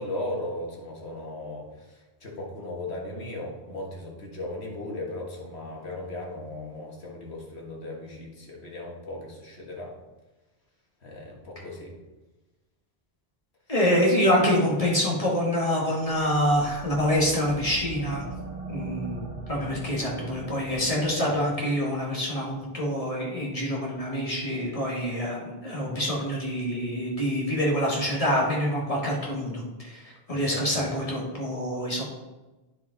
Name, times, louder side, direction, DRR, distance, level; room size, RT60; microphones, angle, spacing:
voice 1, 0.0-9.9 11.0-11.9 30.3-30.8, left 1 dB, 75° left, -2 dB, 1.9 m, -37 dB
voice 2, 13.7-18.2 18.7-32.0, equal, 35° left, -4 dB, 1.9 m, -26 dB
sound 1, 16.3-21.7, right 3 dB, 70° right, 1.7 m, -40 dB
9.6 x 4.9 x 4.0 m, 1.1 s
omnidirectional pair, 1.1 m